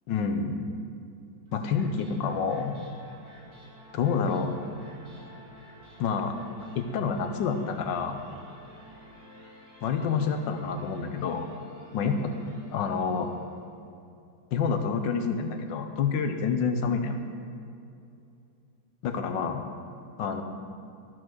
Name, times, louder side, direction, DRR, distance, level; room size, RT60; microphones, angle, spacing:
voice 1, 0.1-0.5 1.5-2.8 3.9-4.5 6.0-6.4 6.7-8.2 9.8-11.5 11.9-12.3 12.7-13.3 14.5-17.2 19.0-19.6 20.2-20.4, left 5 dB, 90° left, 6 dB, 1.5 m, -28 dB
sound 1, 1.5-13.7, right 1 dB, 75° right, 2.8 m, -52 dB
14.0 x 4.7 x 6.1 m, 2.5 s
omnidirectional pair, 1.9 m